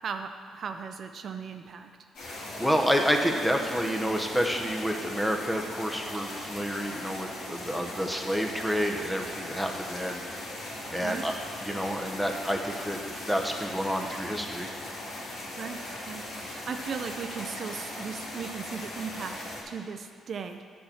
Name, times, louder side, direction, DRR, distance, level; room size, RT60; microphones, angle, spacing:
voice 1, 0.0-1.9 11.0-11.3 15.6-15.8 16.1-19.4 19.7-20.6, right 6 dB, 55° right, 6 dB, 0.5 m, -37 dB
sound 1, 2.1-19.6, left 1 dB, 75° left, 2.6 m, -39 dB
voice 2, 2.3-10.2 10.9-11.3 11.6-13.0 13.3-14.7, equal, ahead, 2 dB, 1.0 m, -29 dB
9.6 x 4.4 x 7.0 m, 2.3 s
cardioid pair, 90°, 0 cm